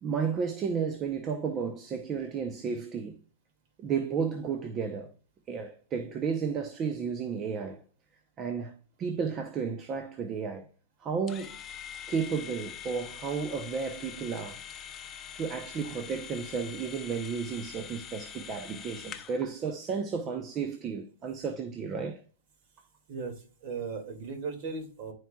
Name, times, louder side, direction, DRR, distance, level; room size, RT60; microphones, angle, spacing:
voice 1, 0.0-3.2 3.8-5.1 5.5-7.8 8.4-10.7 11.0-11.6 12.1-14.6 15.3-22.2, right 6 dB, 25° right, 0.7 m, -33 dB
sound 1, 11.3-19.4, left 9 dB, 20° left, 0.6 m, -44 dB
voice 2, 23.6-25.1, right 4 dB, 50° right, 2.2 m, -37 dB
10.5 x 4.6 x 2.3 m
hypercardioid pair, 135°, 0 cm